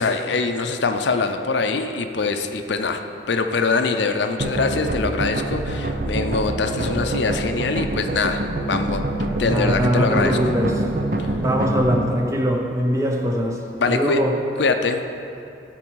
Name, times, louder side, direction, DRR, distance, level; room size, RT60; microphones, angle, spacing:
voice 1, 0.0-10.4 11.2-11.3 13.8-14.2 14.6-15.0, left 4 dB, 80° left, 7 dB, 0.5 m, -23 dB
sound 1, 4.4-12.1, right 1 dB, 50° right, 0.6 m, -25 dB
voice 2, 9.4-10.8 11.4-13.6 13.9-14.3, equal, 15° right, 1 dB, 0.7 m, -22 dB
13.0 x 4.4 x 4.6 m, 2.6 s
head